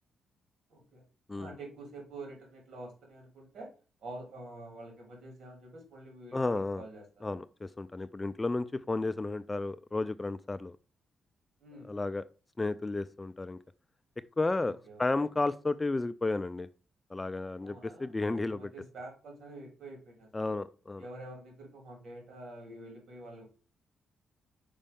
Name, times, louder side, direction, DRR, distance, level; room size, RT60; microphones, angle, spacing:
voice 1, 0.7-1.0 1.3-3.7 4.0-7.4 11.6-11.9 14.6-15.1 17.6-20.6 21.0-23.5, right 2 dB, 65° right, 3.0 m, -47 dB
voice 2, 6.3-6.8 7.2-10.8 11.9-12.2 12.6-13.6 14.4-16.7 17.1-18.7 20.3-21.1, left 3 dB, 25° left, 0.4 m, -32 dB
5.4 x 5.0 x 3.6 m
cardioid pair, 75°, 0 cm